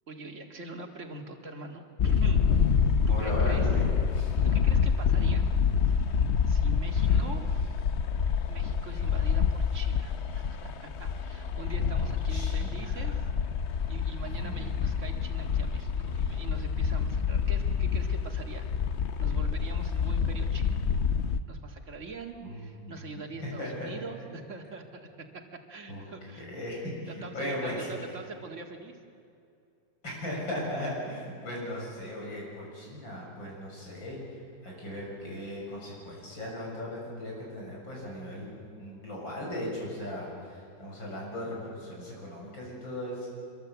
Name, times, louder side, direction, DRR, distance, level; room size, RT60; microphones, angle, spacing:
voice 1, 0.1-2.8 3.2-3.7 4.4-5.4 6.5-7.7 8.5-13.3 13.9-18.7 19.2-20.8 21.5-25.3 25.5-26.5 27.1-29.0, right 3 dB, 40° right, 3 dB, 2.2 m, -44 dB
sound 1, 2.0-21.4, left 6 dB, 55° left, 0.7 m, -27 dB
voice 2, 3.1-3.9 4.1-4.3 5.4-5.7 6.9-7.3 11.9-13.1 14.2-14.6 22.4-23.2 23.6-23.9 25.9-26.0 26.4-27.9 30.0-34.2 34.6-38.5 38.8-43.3, left 1 dB, 80° left, -3 dB, 8.0 m, -37 dB
25.5 x 22.5 x 8.1 m, 2.5 s
omnidirectional pair, 2.0 m